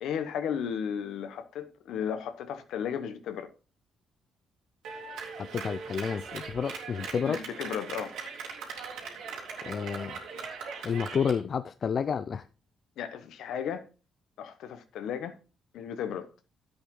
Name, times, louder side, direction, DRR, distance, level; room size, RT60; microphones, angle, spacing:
voice 1, 0.0-3.5 7.2-8.1 13.0-13.9 14.4-15.4 15.7-16.3, left 8 dB, 80° left, 1.2 m, -34 dB
Clapping, 4.8-11.4, right 5 dB, 85° right, 2.7 m, -40 dB
voice 2, 5.4-7.4 9.6-10.2 10.8-12.5, left 6 dB, 50° left, 0.5 m, -30 dB
10.5 x 8.0 x 3.8 m
cardioid pair, 90°, 0 cm